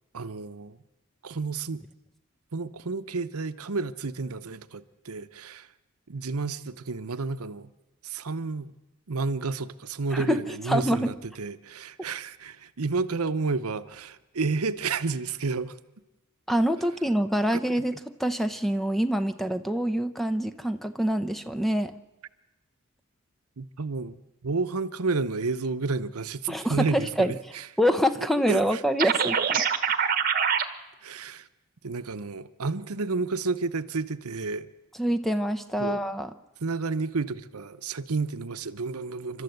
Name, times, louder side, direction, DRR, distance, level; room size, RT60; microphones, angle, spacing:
voice 1, 0.1-0.8 1.2-1.8 2.5-5.7 6.1-7.7 8.0-8.7 9.1-15.8 17.5-17.6 23.6-24.2 24.4-27.7 28.5-28.8 31.0-31.5 31.8-34.7 35.8-36.0 36.6-39.4, right 4 dB, 90° right, 0.9 m, -31 dB
voice 2, 10.1-11.1 16.5-21.9 26.5-27.3 27.8-29.6 35.0-36.3, equal, ahead, 0.7 m, -26 dB
sound 1, 29.0-30.6, right 7 dB, 40° right, 1.2 m, -24 dB
29.0 x 13.0 x 7.9 m
head